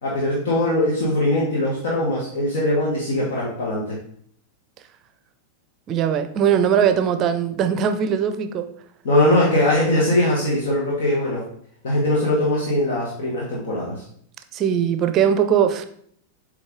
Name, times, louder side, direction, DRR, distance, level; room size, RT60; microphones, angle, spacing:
voice 1, 0.0-4.0 9.0-11.4 11.8-14.0, left 1 dB, 60° left, -4 dB, 1.4 m, -21 dB
voice 2, 5.9-8.7 14.5-15.9, right 8 dB, 35° right, 9 dB, 0.6 m, -20 dB
7.8 x 3.3 x 3.7 m, 0.63 s
figure-of-eight pair, 90°, 0 cm